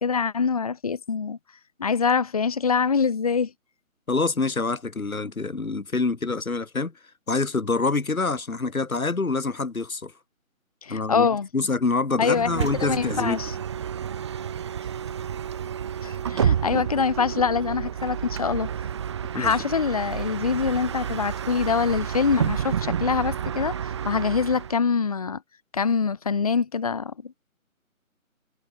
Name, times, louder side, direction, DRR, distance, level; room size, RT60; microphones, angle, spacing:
voice 1, 0.0-1.4 1.8-3.5 10.8-11.5 12.2-13.5 16.0-18.7 19.3-25.4 25.7-27.5, left 5 dB, 25° left, 2.2 m, -24 dB
voice 2, 4.1-6.9 7.3-10.1 10.9-13.4 19.3-19.6, left 3 dB, 80° left, 3.7 m, -26 dB
Bus, 12.3-24.8, right 8 dB, 20° right, 4.8 m, -30 dB
figure-of-eight pair, 170°, 42 cm